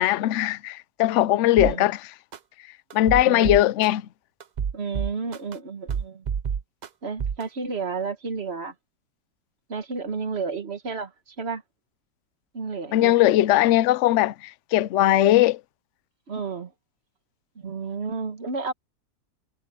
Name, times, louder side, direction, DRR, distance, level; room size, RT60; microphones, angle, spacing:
voice 1, 0.0-2.1 2.9-4.0 12.9-15.6, left 14 dB, 65° left, 0.7 m, -20 dB
sound 1, 1.6-1.7 2.3-2.4 2.9-3.9 4.4-5.5 5.9-6.9 7.2-7.4, right 7 dB, 80° right, 0.4 m, -28 dB
voice 2, 3.2-3.6 4.7-6.2 7.0-8.7 9.7-11.6 12.5-13.2 16.3-16.7 17.6-18.7, right 4 dB, 40° right, 1.6 m, -31 dB
omnidirectional pair, 1.7 m